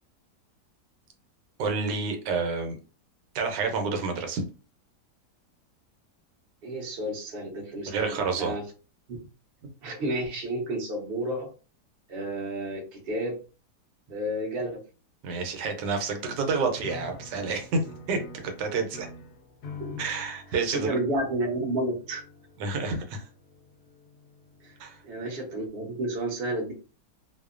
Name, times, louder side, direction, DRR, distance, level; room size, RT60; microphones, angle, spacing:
voice 1, 1.6-2.8 3.3-4.4 7.9-8.5 15.2-19.1 20.0-20.9 22.6-23.2 24.8-25.0, right 4 dB, 85° right, 4 dB, 1.2 m, -29 dB
voice 2, 6.6-8.6 9.8-11.5 12.1-13.4 14.1-14.8 19.8-20.0 20.7-22.2 24.6-24.7 25.0-26.7, right 1 dB, 50° right, 0 dB, 0.8 m, -31 dB
sound 1, 16.8-25.1, left 3 dB, 70° left, 0.8 m, -46 dB
2.8 x 2.1 x 2.3 m, 0.35 s
omnidirectional pair, 1.8 m